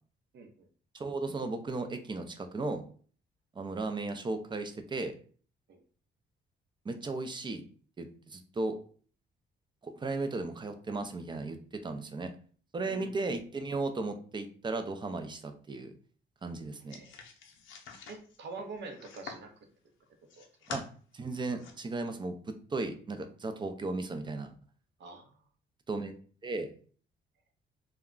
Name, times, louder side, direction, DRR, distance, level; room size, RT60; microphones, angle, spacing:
voice 1, 0.3-0.7 5.7-5.8 12.9-13.1 16.9-17.1 18.1-19.5 20.3-20.5 25.0-25.3, right 3 dB, 65° right, 5 dB, 0.7 m, -45 dB
voice 2, 0.9-2.8 3.6-5.1 6.9-7.6 8.0-8.8 9.8-12.3 12.7-15.9 16.4-17.0 20.7-20.8 21.1-24.5 25.9-26.1 26.4-26.7, right 3 dB, 25° right, 7 dB, 0.4 m, -35 dB
sound 1, 16.9-19.5 20.0-20.9 21.3-21.7, left 5 dB, 80° left, 0.6 m, -46 dB
2.3 x 2.1 x 3.6 m, 0.43 s
cardioid pair, 90°, 20 cm